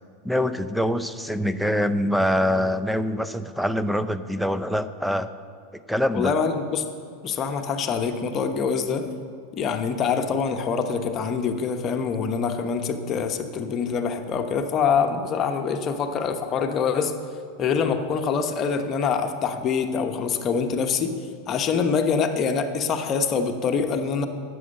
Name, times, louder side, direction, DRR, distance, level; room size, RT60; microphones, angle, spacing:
voice 1, 0.2-5.3 5.9-6.3, equal, ahead, 12 dB, 0.6 m, -24 dB
voice 2, 6.1-6.9 7.2-9.1 9.5-17.1 17.6-21.2 21.5-24.3, left 6 dB, 35° left, 6 dB, 1.1 m, -25 dB
11.0 x 7.9 x 6.6 m, 2.3 s
hypercardioid pair, 100°, 0 cm